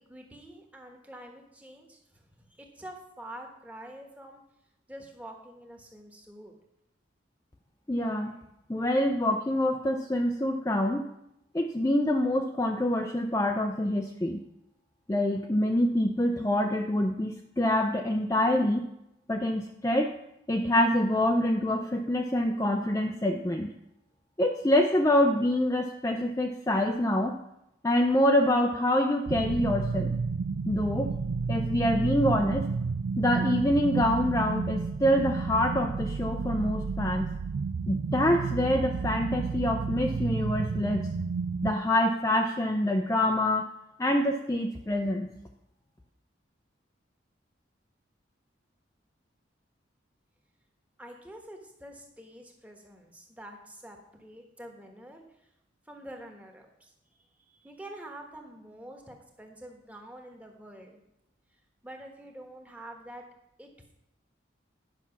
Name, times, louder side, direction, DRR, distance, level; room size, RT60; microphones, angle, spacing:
voice 1, 0.1-4.4 4.9-6.5 51.0-55.2 55.9-56.9 57.5-61.0 61.8-63.2 63.6-63.7, right 1 dB, 5° right, 2 dB, 1.2 m, -46 dB
voice 2, 7.9-8.4 8.7-11.0 11.5-14.4 15.1-18.8 19.3-20.1 20.5-23.7 24.4-27.4 27.8-30.1 30.7-31.1 31.5-32.6 33.2-37.3 37.9-41.1 41.6-43.7 44.0-45.3, left 1 dB, 15° left, 2 dB, 0.5 m, -26 dB
sound 1, 29.3-41.7, right 4 dB, 80° right, 0.4 m, -31 dB
10.0 x 6.0 x 5.8 m, 0.84 s
head